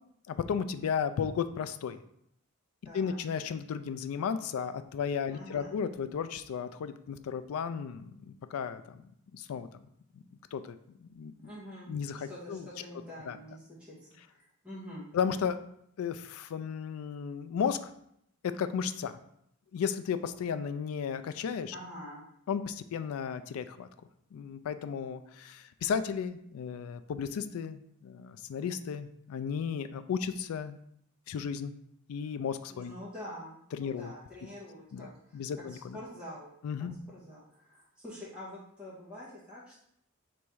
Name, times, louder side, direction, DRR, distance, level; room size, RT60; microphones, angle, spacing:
voice 1, 0.3-2.0 2.9-9.0 9.3-9.7 10.1-10.2 10.5-10.7 11.0-11.5 11.9-12.7 13.3-13.4 15.1-15.6 16.0-17.9 18.4-19.2 19.7-21.7 22.5-23.9 24.3-30.8 31.3-31.8 32.1-32.9 33.7-34.1 34.9-36.0 36.6-37.0, left 7 dB, 75° left, 11 dB, 0.3 m, -34 dB
voice 2, 2.8-3.1 5.3-5.8 11.4-11.9 12.3-15.1 21.7-22.2 32.7-36.5 37.1-39.8, equal, 5° right, -8 dB, 1.5 m, -46 dB
3.5 x 3.1 x 4.6 m, 0.72 s
head